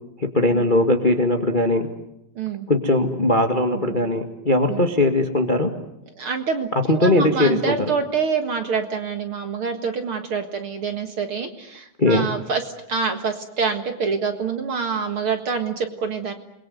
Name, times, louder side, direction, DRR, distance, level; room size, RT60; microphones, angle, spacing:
voice 1, 0.2-1.9 2.7-5.7 6.9-7.8 12.0-12.3, left 1 dB, 25° left, 5 dB, 1.2 m, -19 dB
voice 2, 2.4-2.7 3.7-4.0 4.7-4.8 6.2-16.3, right 5 dB, 50° right, 6 dB, 2.1 m, -26 dB
29.0 x 22.0 x 7.9 m, 0.82 s
omnidirectional pair, 3.8 m